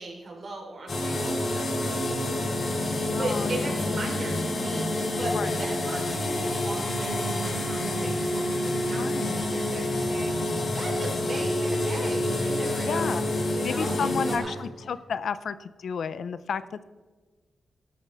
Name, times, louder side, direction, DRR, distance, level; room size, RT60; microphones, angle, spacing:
voice 1, 0.0-14.6, right 2 dB, 40° right, 0 dB, 3.7 m, -38 dB
sound 1, 0.9-14.4, left 1 dB, 50° left, 3.4 m, -28 dB
voice 2, 3.1-3.7 5.3-5.5 8.9-9.4 12.9-13.3 13.6-16.8, left 6 dB, 65° left, 14 dB, 0.5 m, -32 dB
17.0 x 12.5 x 3.5 m, 1.4 s
wide cardioid pair, 170°, 0 cm